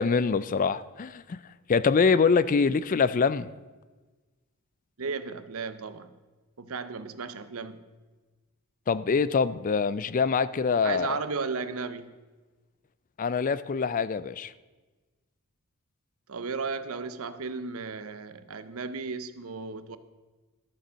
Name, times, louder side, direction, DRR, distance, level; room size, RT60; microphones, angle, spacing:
voice 1, 0.0-1.4 1.7-3.5 8.9-11.2 13.2-14.5, left 5 dB, 35° left, 16 dB, 0.4 m, -24 dB
voice 2, 5.0-6.1 6.6-7.9 10.8-12.1 16.3-20.0, right 4 dB, 70° right, 13 dB, 0.8 m, -35 dB
13.0 x 7.0 x 6.2 m, 1.3 s
head